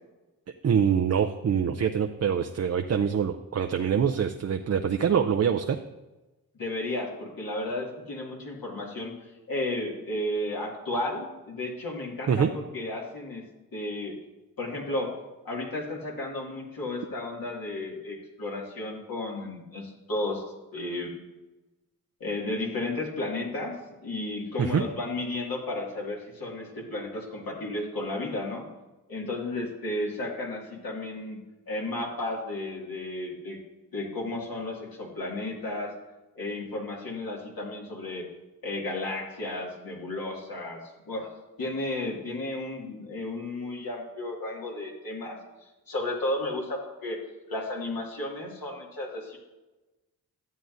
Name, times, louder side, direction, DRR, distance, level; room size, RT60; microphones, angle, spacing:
voice 1, 0.6-5.8 12.3-12.5 24.6-24.8, right 7 dB, 45° right, 6 dB, 0.5 m, -25 dB
voice 2, 6.6-9.1 9.5-13.4 13.7-14.2 14.6-15.1 15.4-20.4 20.7-21.1 22.2-23.8 24.0-28.7 29.1-31.4 31.7-33.6 33.9-35.9 36.4-38.3 38.6-41.3 41.6-47.2 47.5-49.4, left 2 dB, 70° left, -2 dB, 2.2 m, -33 dB
12.5 x 7.7 x 2.6 m, 1.1 s
cardioid pair, 55°, 37 cm